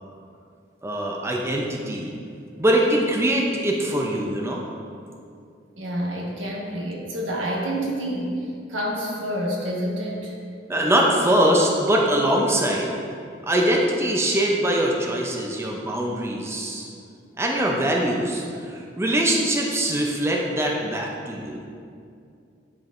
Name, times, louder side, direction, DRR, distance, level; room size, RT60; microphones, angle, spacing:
voice 1, 0.8-2.1 2.6-4.6 10.7-12.9 13.4-16.9 17.4-21.6, right 1 dB, 15° right, -1 dB, 0.5 m, -22 dB
voice 2, 5.8-10.4, equal, 85° right, -3 dB, 1.3 m, -28 dB
10.5 x 4.4 x 2.5 m, 2.4 s
head